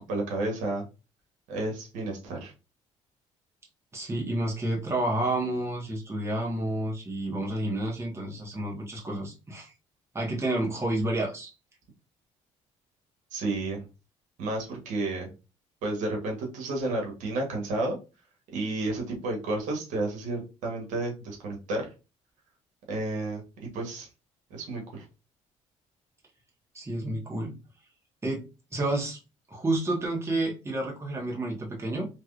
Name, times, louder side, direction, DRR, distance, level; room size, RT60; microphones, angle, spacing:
voice 1, 0.1-0.8 1.5-2.5 13.3-13.8 14.4-15.3 15.8-18.0 18.5-21.9 22.9-23.4 23.7-24.1 24.5-25.0, right 2 dB, 80° right, 0 dB, 1.2 m, -31 dB
voice 2, 3.9-9.7 10.1-11.5 26.7-27.5 28.2-28.4 28.7-29.2 29.5-32.1, right 1 dB, 20° right, -2 dB, 1.5 m, -30 dB
3.4 x 3.0 x 2.5 m, 0.30 s
cardioid pair, 90°, 13 cm